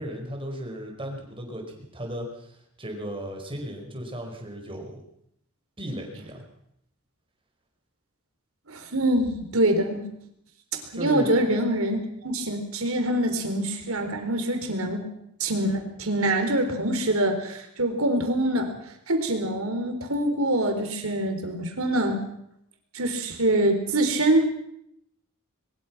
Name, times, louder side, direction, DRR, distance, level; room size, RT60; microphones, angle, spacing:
voice 1, 0.0-5.0 5.8-6.4 10.9-11.3, equal, 25° right, 2 dB, 4.9 m, -36 dB
voice 2, 8.7-10.1 10.9-15.1 15.4-18.7 19.1-22.2 22.9-24.4, right 1 dB, 65° right, 5 dB, 4.1 m, -25 dB
22.5 x 20.5 x 6.0 m, 0.74 s
head